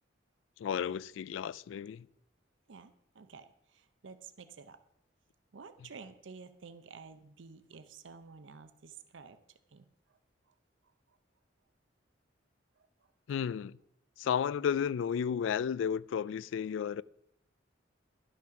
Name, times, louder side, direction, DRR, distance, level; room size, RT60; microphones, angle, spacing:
voice 1, 0.6-2.1 13.3-13.8 14.2-17.0, left 7 dB, 80° left, 0.3 m, -33 dB
voice 2, 2.7-4.8 5.5-9.4 9.7-10.2 10.5-10.6 10.8-11.2 12.8-13.1, right 5 dB, 75° right, 0.6 m, -52 dB
12.0 x 6.0 x 5.8 m
head